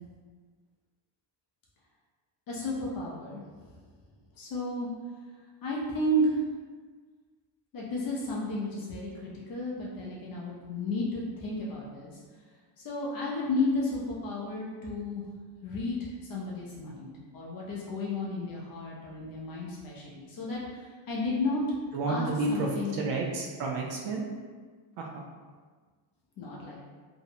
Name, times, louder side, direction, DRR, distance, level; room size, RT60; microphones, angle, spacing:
voice 1, 2.5-3.4 4.4-4.9 5.6-6.4 7.7-12.1 12.8-15.2 15.6-16.0 16.3-21.6 22.1-22.9 26.4-26.9, left 1 dB, 45° left, -4 dB, 0.5 m, -32 dB
voice 2, 21.9-24.3 25.0-25.2, right 3 dB, 65° right, -1 dB, 0.5 m, -31 dB
2.6 x 2.0 x 2.7 m, 1.5 s
cardioid pair, 145°, 47 cm